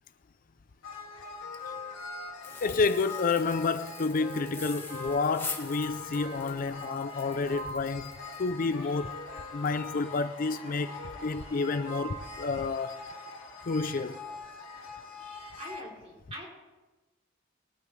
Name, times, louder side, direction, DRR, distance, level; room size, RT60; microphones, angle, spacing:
sound 1, 0.8-15.8, left 2 dB, 75° left, 2.7 m, -42 dB
sound 2, 2.4-10.2 10.6-10.7 11.1-11.3 11.6-11.8, left 4 dB, 10° left, 1.9 m, -44 dB
voice 1, 2.6-9.2 9.5-11.0 11.2-13.0 13.7-14.2, left 4 dB, 45° left, 0.4 m, -30 dB
voice 2, 15.4-16.5, equal, 30° right, 3.6 m, -44 dB
22.5 x 8.9 x 3.2 m
head